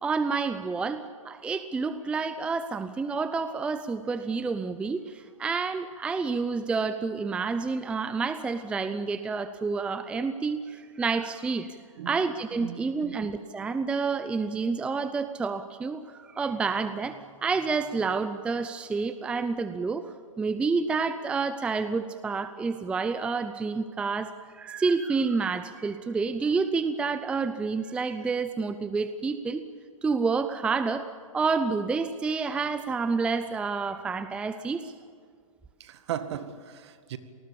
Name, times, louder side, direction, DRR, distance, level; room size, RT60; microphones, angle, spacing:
voice 1, 0.0-11.7 12.1-29.6 30.0-34.9, right 4 dB, 5° right, 11 dB, 0.6 m, -29 dB
voice 2, 12.6-13.2 35.8-37.2, right 10 dB, 50° right, 10 dB, 2.0 m, -37 dB
28.0 x 19.5 x 7.1 m, 2.1 s
hypercardioid pair, 145°, 18 cm